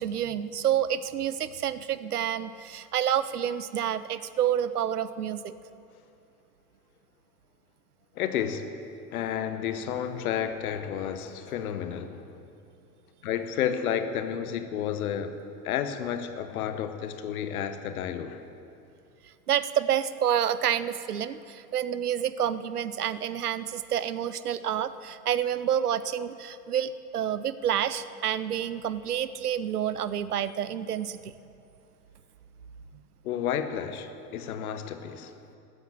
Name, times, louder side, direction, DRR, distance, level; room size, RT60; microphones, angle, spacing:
voice 1, 0.0-5.5 19.5-31.3, right 10 dB, 90° right, 15 dB, 0.6 m, -28 dB
voice 2, 8.1-8.7 9.1-12.3 13.2-15.4 15.6-18.4 33.2-35.4, left 9 dB, 70° left, 9 dB, 1.1 m, -31 dB
13.5 x 9.3 x 7.6 m, 2.6 s
hypercardioid pair, 80°, 44 cm